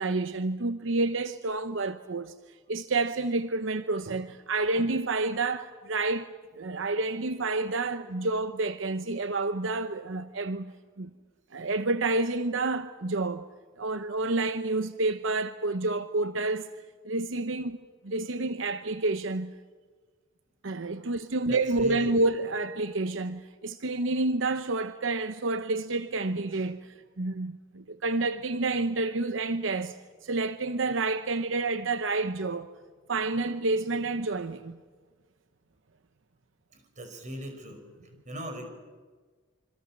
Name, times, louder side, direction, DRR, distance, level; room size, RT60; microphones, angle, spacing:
voice 1, 0.0-2.3 2.7-11.1 11.5-13.5 13.8-16.7 17.0-17.8 18.0-19.5 20.6-30.0 30.2-32.7 33.1-34.8, right 3 dB, 85° right, 0.9 m, -29 dB
voice 2, 21.5-22.3 36.7-37.8 38.3-38.7, equal, 40° right, 5.3 m, -39 dB
26.5 x 26.0 x 7.5 m
head